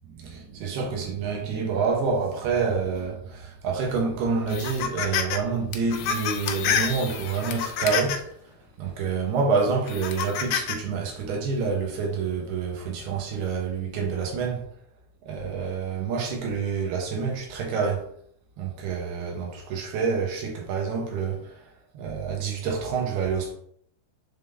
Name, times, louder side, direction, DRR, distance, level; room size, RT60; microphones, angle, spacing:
voice 1, 0.1-8.3 8.8-14.6 15.2-18.1 18.6-21.6 21.9-23.5, right 5 dB, 90° right, 3.2 m, -27 dB
sound 1, 4.5-5.4 5.7-8.3 8.9-9.1 9.9-10.8, left 8 dB, 80° left, 1.9 m, -28 dB
7.4 x 3.7 x 3.4 m
omnidirectional pair, 4.4 m